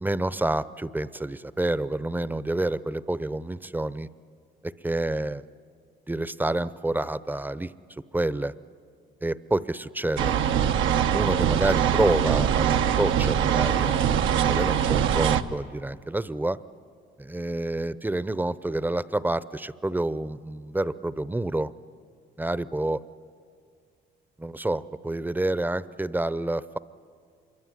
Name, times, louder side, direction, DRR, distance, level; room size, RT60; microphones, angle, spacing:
voice 1, 0.0-4.1 4.6-5.4 6.1-7.7 8.1-8.5 9.2-10.3 11.1-16.6 17.2-21.7 22.4-23.0 24.4-26.8, right 1 dB, 10° right, 16 dB, 0.7 m, -28 dB
sound 1, 10.2-15.4, right 9 dB, 85° right, 1.0 m, -23 dB
25.5 x 22.5 x 9.9 m, 2.2 s
cardioid pair, 90°, 20 cm